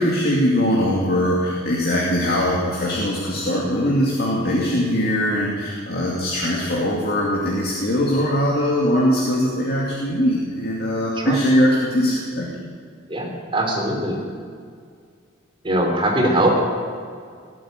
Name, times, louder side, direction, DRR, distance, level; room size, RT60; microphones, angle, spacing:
voice 1, 0.0-12.5, equal, 55° left, -4 dB, 2.5 m, -21 dB
voice 2, 13.1-14.2 15.6-16.6, right 1 dB, 25° right, 0 dB, 3.3 m, -21 dB
18.0 x 8.3 x 8.9 m, 2.1 s
head